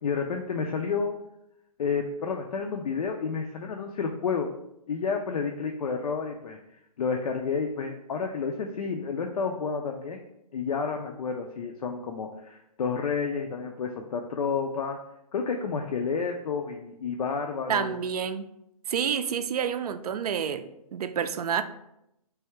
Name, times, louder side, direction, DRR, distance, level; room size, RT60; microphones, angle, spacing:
voice 1, 0.0-1.2 1.8-4.5 4.9-6.6 7.0-10.2 10.5-15.0 15.3-18.0, left 5 dB, 70° left, 3 dB, 0.5 m, -30 dB
voice 2, 17.7-18.5 18.9-21.6, right 8 dB, 75° right, 11 dB, 0.4 m, -29 dB
3.4 x 2.7 x 4.4 m, 0.82 s
hypercardioid pair, 150°, 20 cm